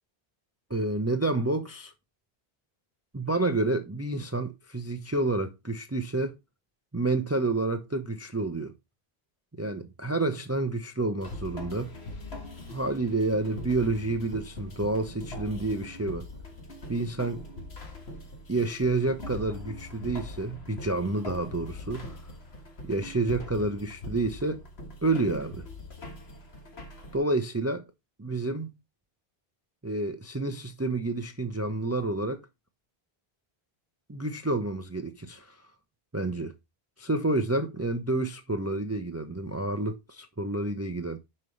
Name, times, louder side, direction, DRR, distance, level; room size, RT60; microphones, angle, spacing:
voice 1, 0.7-1.9 3.1-6.4 6.9-8.7 9.6-11.9 12.7-16.3 16.9-17.4 18.5-22.2 22.8-24.6 25.0-25.7 27.1-27.8 28.2-28.7 29.8-32.4 34.1-35.6 36.1-36.5 37.0-41.2, right 2 dB, 15° right, 0.6 m, -29 dB
sound 1, 11.2-27.2, left 1 dB, 85° left, 1.8 m, -42 dB
9.7 x 5.4 x 3.2 m
omnidirectional pair, 1.0 m